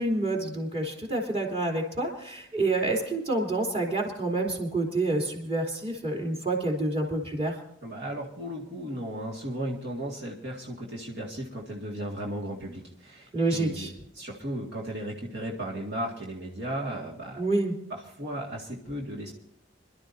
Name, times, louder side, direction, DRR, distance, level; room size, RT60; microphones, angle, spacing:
voice 1, 0.0-7.6 13.3-13.9 17.4-17.7, right 2 dB, 35° right, 0 dB, 3.2 m, -28 dB
voice 2, 7.8-17.5 17.9-19.3, right 1 dB, 65° right, -3 dB, 2.0 m, -35 dB
26.0 x 12.5 x 2.7 m, 0.73 s
head